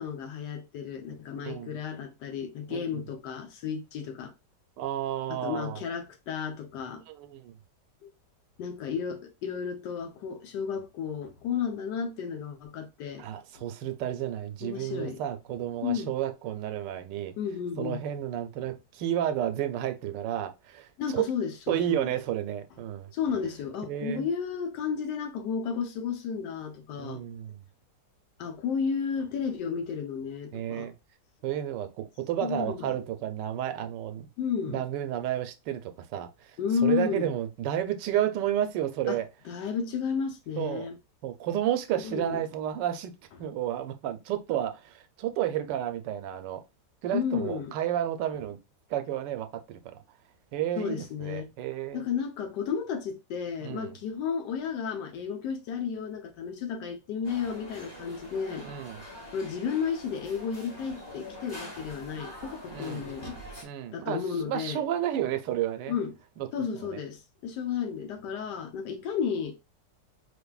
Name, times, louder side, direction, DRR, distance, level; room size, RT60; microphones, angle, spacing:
voice 1, 0.0-4.3 5.3-7.0 8.6-13.3 13.5-13.6 14.6-15.2 15.8-16.1 17.4-18.0 21.0-22.1 23.1-27.2 28.4-30.9 32.4-33.0 34.4-34.9 36.6-37.3 39.1-39.2 39.5-40.9 42.0-42.4 47.1-47.7 50.8-51.5 51.9-58.6 59.3-63.4 63.9-64.8 65.9-66.1 66.5-69.6, left 7 dB, 80° left, 1.4 m, -32 dB
voice 2, 2.7-3.0 4.8-5.8 7.1-7.6 13.2-17.3 17.8-21.3 21.7-23.1 23.9-24.3 27.0-27.6 30.5-30.9 31.4-34.3 34.7-36.6 36.8-39.3 40.6-40.9 41.2-43.1 43.4-46.6 47.0-48.6 48.9-50.0 50.5-52.0 53.6-54.0 58.6-59.0 62.7-63.1 63.6-65.9 66.4-67.0, right 11 dB, 85° right, 1.2 m, -31 dB
sound 1, 57.2-63.6, equal, 15° left, 1.1 m, -44 dB
4.7 x 2.6 x 2.3 m
omnidirectional pair, 1.9 m